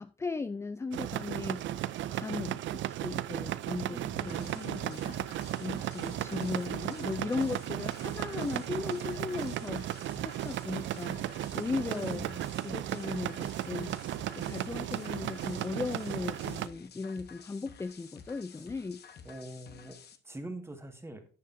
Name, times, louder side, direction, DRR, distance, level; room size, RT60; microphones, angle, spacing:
voice 1, 0.0-1.7 2.1-5.1 5.6-9.9 10.2-11.2 11.5-12.3 12.6-14.0 14.4-19.0, left 4 dB, 15° left, 0.3 m, -37 dB
sound 1, 0.9-16.7, right 13 dB, 70° right, 0.4 m, -35 dB
voice 2, 3.9-4.6 11.9-12.5 19.3-20.0 20.2-21.3, right 1 dB, 15° right, 1.7 m, -44 dB
sound 2, 4.2-20.2, left 7 dB, 55° left, 1.1 m, -52 dB
11.5 x 6.7 x 2.6 m
cardioid pair, 90°, 20 cm